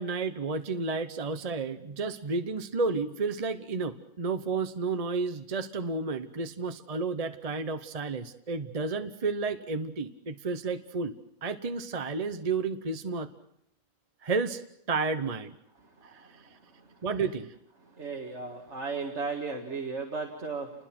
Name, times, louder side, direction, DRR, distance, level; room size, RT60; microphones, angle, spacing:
voice 1, 0.0-11.1 11.4-13.3 14.2-14.6 14.9-15.5 16.0-16.3 17.0-17.5, right 4 dB, 30° right, 9 dB, 0.9 m, -31 dB
voice 2, 18.0-20.7, right 4 dB, 55° right, 0 dB, 2.3 m, -35 dB
29.0 x 21.0 x 6.1 m, 0.77 s
omnidirectional pair, 1.4 m